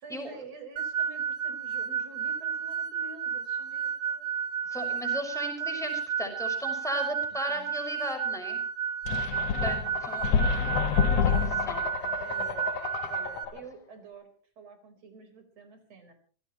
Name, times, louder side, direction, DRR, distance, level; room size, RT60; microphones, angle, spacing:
voice 1, 0.0-4.4 7.5-7.7 9.5-9.7 12.1-14.3 14.6-16.1, right 4 dB, 55° right, 7 dB, 5.3 m, -48 dB
sound 1, 0.8-13.4, right 7 dB, 75° right, 4.0 m, -32 dB
voice 2, 4.7-8.6 9.6-11.8, equal, ahead, 4 dB, 5.6 m, -37 dB
sound 2, 9.1-13.6, left 6 dB, 60° left, 2.3 m, -28 dB
26.0 x 17.0 x 3.1 m, 0.42 s
omnidirectional pair, 3.5 m